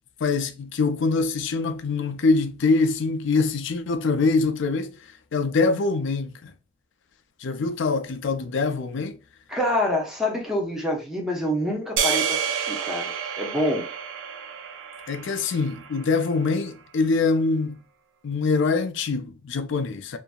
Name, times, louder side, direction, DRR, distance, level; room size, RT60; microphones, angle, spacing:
voice 1, 0.2-4.9 5.3-6.5 7.4-9.2 15.1-17.8 18.2-20.2, left 4 dB, 60° left, 0.4 m, -24 dB
voice 2, 9.5-13.9, left 1 dB, ahead, 0.8 m, -26 dB
sound 1, 12.0-16.3, right 7 dB, 65° right, 0.4 m, -29 dB
2.8 x 2.6 x 2.2 m
head